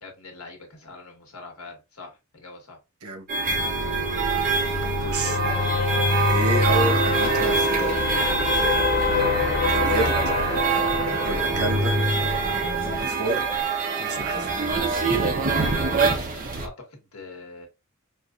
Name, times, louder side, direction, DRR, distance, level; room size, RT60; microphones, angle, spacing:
voice 1, 0.0-2.8 5.9-6.3 9.5-10.4 10.8-11.0 12.7-13.1 15.6-17.7, left 3 dB, 80° left, 1.5 m, -44 dB
sound 1, 3.3-16.7, right 5 dB, 40° right, 0.8 m, -25 dB
sound 2, 3.5-13.1, left 4 dB, 45° left, 0.5 m, -26 dB
voice 2, 4.8-5.4 6.2-7.9 9.7-10.1 11.2-12.0 12.8-13.4 14.0-14.5, right 2 dB, 90° right, 0.9 m, -30 dB
sound 3, 7.8-15.1, right 1 dB, 15° right, 0.4 m, -42 dB
4.6 x 2.5 x 2.4 m
head